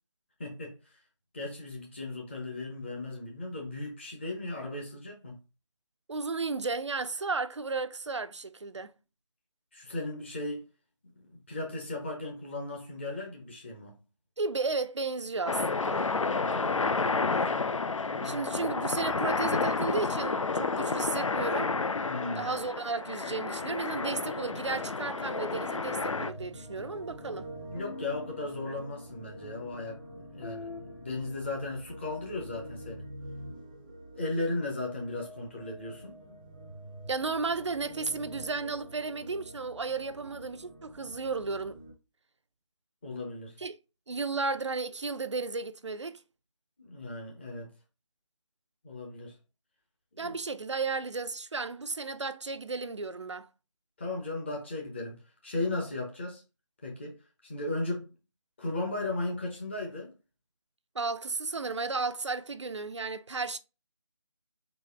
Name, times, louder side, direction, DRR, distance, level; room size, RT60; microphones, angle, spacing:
voice 1, 0.4-0.8 1.3-5.4 9.7-10.6 11.1-14.0 16.1-17.7 18.0-18.4 22.1-22.5 27.7-33.0 34.1-36.2 43.0-43.6 46.8-47.7 48.8-49.4 50.1-50.3 54.0-56.4 56.8-57.1 57.4-58.1 58.6-60.1, left 2 dB, 20° left, 0.8 m, -36 dB
voice 2, 6.1-8.9 14.4-16.0 18.2-21.7 22.4-27.5 37.1-41.8 43.6-43.8 44.1-46.2 50.2-53.5 60.9-63.6, right 4 dB, 65° right, 0.5 m, -34 dB
sound 1, 15.5-26.3, left 4 dB, 75° left, 0.5 m, -30 dB
sound 2, 24.1-31.9, left 4 dB, 50° left, 0.9 m, -48 dB
sound 3, 24.4-41.9, right 1 dB, 15° right, 0.6 m, -47 dB
4.1 x 3.1 x 3.4 m
figure-of-eight pair, 160°, 16 cm